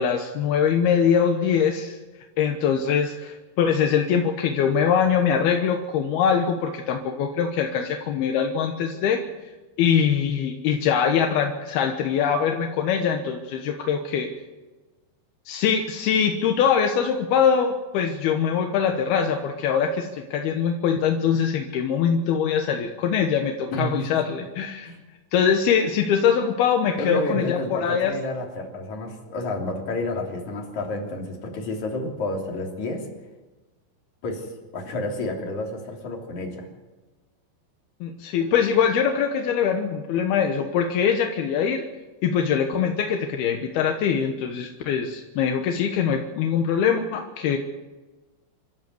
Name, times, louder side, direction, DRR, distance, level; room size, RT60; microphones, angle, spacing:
voice 1, 0.0-2.0 2.4-9.2 9.8-14.3 15.5-24.9 25.3-28.1 38.0-41.8 42.2-47.6, left 7 dB, 70° left, 4 dB, 2.5 m, -23 dB
voice 2, 23.7-24.2 24.8-25.0 27.0-33.1 34.2-36.7, left 2 dB, 40° left, 0 dB, 4.0 m, -30 dB
27.0 x 13.5 x 7.9 m, 1.2 s
omnidirectional pair, 5.9 m